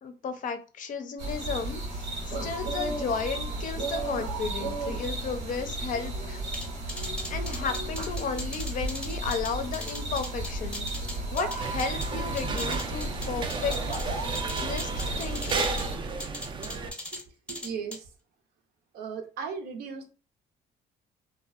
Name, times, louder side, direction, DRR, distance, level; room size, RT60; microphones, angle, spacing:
voice 1, 0.0-6.4 7.3-10.9 11.3-13.8 14.1-14.2 14.6-15.7, left 5 dB, 50° left, 7 dB, 0.5 m, -34 dB
sound 1, 1.2-16.0, right 2 dB, 85° right, 1.1 m, -33 dB
sound 2, 6.5-12.1 12.4-14.0 14.3-15.9 16.2-17.2 17.5-18.0, left 1 dB, 5° left, 0.7 m, -38 dB
sound 3, 11.6-16.9, right 4 dB, 30° right, 0.3 m, -34 dB
voice 2, 17.1-18.1 18.9-20.1, right 6 dB, 70° right, 4 dB, 0.6 m, -37 dB
2.6 x 2.1 x 2.4 m, 0.33 s
cardioid pair, 110°, 17 cm